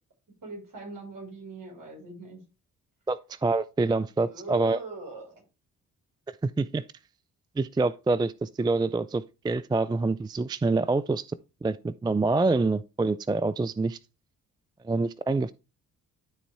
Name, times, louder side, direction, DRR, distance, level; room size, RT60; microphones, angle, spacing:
voice 1, 0.4-2.4 4.3-5.3, right 2 dB, 55° right, 5.2 m, -41 dB
voice 2, 3.1-4.8 6.4-6.8 7.6-11.2 11.6-14.0 14.8-15.5, right 3 dB, 10° right, 0.4 m, -26 dB
12.5 x 4.1 x 3.5 m
hypercardioid pair, 40°, 38 cm